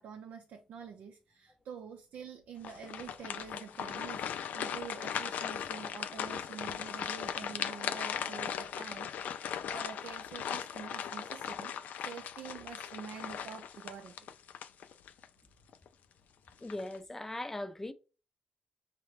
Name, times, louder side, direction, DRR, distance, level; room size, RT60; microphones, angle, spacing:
voice 1, 0.0-11.7 12.0-14.3, right 7 dB, 80° right, 0.5 m, -47 dB
sound 1, 2.6-15.3 15.7-15.9 16.5-17.0, left 8 dB, 80° left, 0.3 m, -38 dB
voice 2, 16.6-17.9, left 1 dB, 15° left, 0.4 m, -39 dB
5.9 x 2.1 x 3.2 m
cardioid pair, 110°, 3 cm